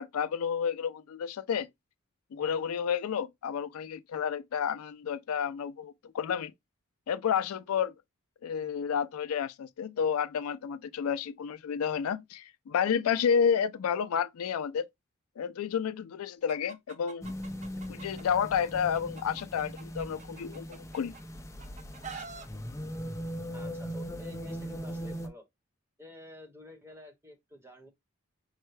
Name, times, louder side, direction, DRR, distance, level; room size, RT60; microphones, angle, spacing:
voice 1, 0.0-1.7 2.3-6.5 7.1-7.9 8.4-14.9 15.4-17.3 17.9-21.1, left 7 dB, 85° left, 0.4 m, -30 dB
Chicken rooster, 16.5-18.2 18.6-21.2 21.6-22.5, right 5 dB, 35° right, 0.5 m, -46 dB
sound 1, 17.2-25.3, equal, 15° left, 0.5 m, -40 dB
voice 2, 23.5-25.4 26.0-27.9, left 1 dB, 10° right, 1.0 m, -50 dB
5.5 x 2.1 x 3.1 m
head